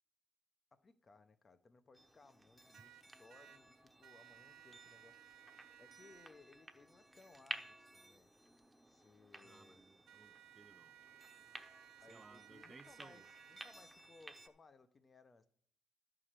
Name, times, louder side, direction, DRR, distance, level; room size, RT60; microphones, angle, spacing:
voice 1, 0.7-5.2 5.8-8.3 8.9-9.8 12.0-15.5, left 3 dB, 35° left, 0.8 m, -64 dB
sound 1, 1.9-14.5, right 1 dB, 5° right, 1.0 m, -55 dB
sound 2, 2.7-3.6 4.0-6.3 10.1-13.7, right 12 dB, 85° right, 0.7 m, -60 dB
voice 2, 9.4-10.9 12.1-13.3, right 4 dB, 30° right, 0.4 m, -61 dB
11.0 x 4.9 x 7.5 m
cardioid pair, 90°, 0 cm